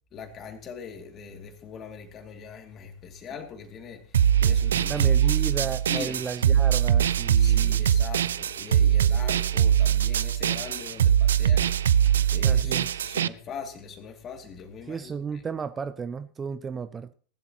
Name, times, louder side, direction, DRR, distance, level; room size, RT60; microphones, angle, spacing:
voice 1, 0.1-6.3 7.4-15.4, left 6 dB, 30° left, 2.5 m, -42 dB
sound 1, 4.1-13.3, right 9 dB, 65° right, 0.5 m, -22 dB
voice 2, 4.9-7.9 12.4-13.1 14.9-17.1, right 6 dB, 20° right, 0.6 m, -34 dB
19.5 x 12.0 x 3.0 m
figure-of-eight pair, 90°, 0 cm